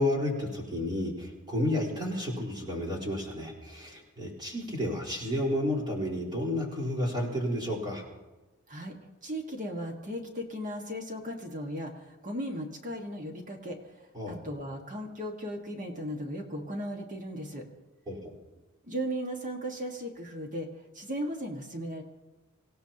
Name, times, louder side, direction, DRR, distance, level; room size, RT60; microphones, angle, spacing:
voice 1, 0.0-8.0 14.1-14.4 18.1-18.3, left 1 dB, 20° right, -2 dB, 4.2 m, -31 dB
voice 2, 9.2-13.8 14.3-17.7 18.8-20.7 21.0-22.0, equal, 35° right, 2 dB, 1.7 m, -36 dB
25.5 x 16.5 x 2.9 m, 1.2 s
head